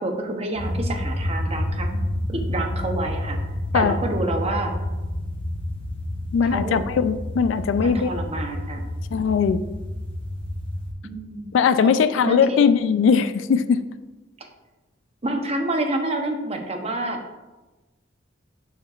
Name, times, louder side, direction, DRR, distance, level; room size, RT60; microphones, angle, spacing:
voice 1, 0.0-2.0 2.3-3.4 3.7-4.7 6.5-6.8 7.8-8.8 11.0-12.7 14.4-14.5 15.2-17.2, right 2 dB, 30° right, 3 dB, 0.7 m, -28 dB
sound 1, 0.5-10.9, left 1 dB, 30° left, 1.0 m, -29 dB
voice 2, 6.3-8.1 9.1-9.6 11.5-13.8, left 6 dB, 75° left, 12 dB, 0.3 m, -20 dB
6.4 x 6.3 x 2.4 m, 1.1 s
head